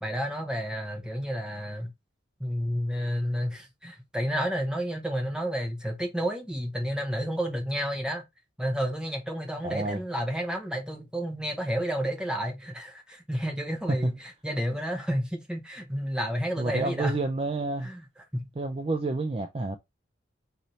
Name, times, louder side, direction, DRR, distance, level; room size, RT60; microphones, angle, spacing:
voice 1, 0.0-1.9 2.4-8.2 8.6-14.1 14.4-17.2 17.8-18.0 18.3-18.5, equal, 5° right, 0.8 m, -30 dB
voice 2, 9.6-10.0 13.9-14.2 16.5-17.9 18.6-19.8, right 2 dB, 30° right, 0.3 m, -29 dB
4.1 x 2.7 x 3.1 m
head